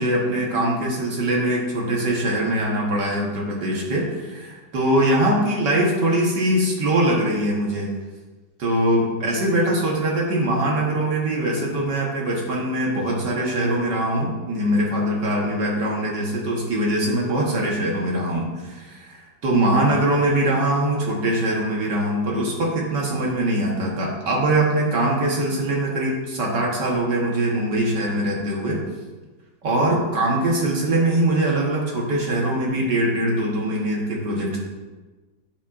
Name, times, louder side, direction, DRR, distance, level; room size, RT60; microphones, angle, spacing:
voice 1, 0.0-7.9 8.6-28.8 29.6-34.6, right 1 dB, 65° right, -2 dB, 1.8 m, -22 dB
9.7 x 7.2 x 2.5 m, 1.3 s
omnidirectional pair, 2.1 m